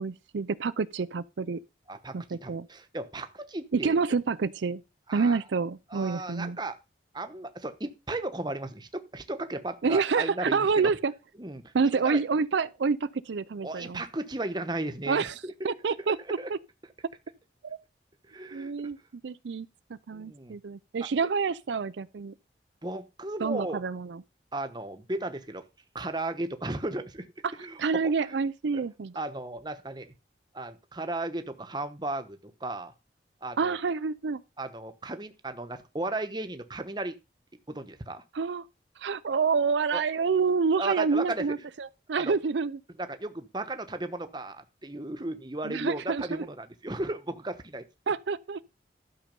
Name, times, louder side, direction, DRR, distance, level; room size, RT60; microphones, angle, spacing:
voice 1, 0.0-1.6 2.1-2.7 3.7-4.8 5.1-6.6 9.8-11.1 11.7-14.0 15.1-15.4 15.6-16.6 17.6-17.8 18.5-19.0 19.2-19.7 20.1-22.3 23.4-24.2 27.4-27.5 27.8-29.1 33.6-34.4 38.3-38.6 39.0-42.8 45.6-46.5 48.1-48.6, right 5 dB, 80° right, 0.5 m, -28 dB
voice 2, 1.9-3.9 5.1-5.4 5.9-6.8 7.1-10.9 11.4-12.2 13.6-15.7 16.4-16.5 18.3-18.9 20.1-20.6 22.8-23.8 24.5-25.6 25.9-27.3 27.6-27.8 28.2-28.4 28.7-28.8 29.1-30.1 30.5-32.9 33.4-33.8 34.6-37.1 37.7-38.2 39.9-40.0 40.8-41.5 42.1-42.4 43.0-47.8, right 2 dB, 25° right, 1.0 m, -35 dB
12.0 x 6.6 x 5.3 m
head